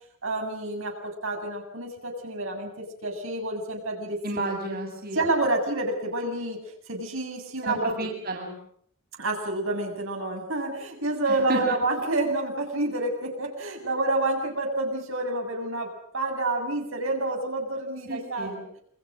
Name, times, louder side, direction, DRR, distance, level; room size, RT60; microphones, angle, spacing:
voice 1, 0.2-4.2 5.1-6.6 6.9-7.9 9.2-18.5, right 2 dB, 70° right, 2 dB, 7.6 m, -28 dB
voice 2, 4.2-5.2 7.6-8.6 11.3-11.8 18.1-18.6, right 2 dB, 45° right, 1 dB, 7.2 m, -31 dB
29.0 x 25.5 x 6.4 m, 0.66 s
head